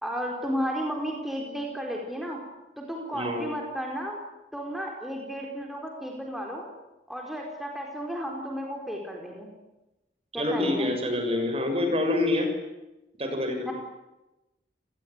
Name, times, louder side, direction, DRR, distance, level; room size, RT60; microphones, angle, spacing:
voice 1, 0.0-2.4 2.8-4.2 4.5-6.7 7.1-9.5 10.3-10.9 13.6-13.7, equal, ahead, 0 dB, 4.6 m, -33 dB
voice 2, 3.1-3.4 10.3-12.5 13.2-13.7, left 2 dB, 35° right, 6 dB, 6.6 m, -26 dB
29.0 x 19.5 x 9.9 m, 0.98 s
head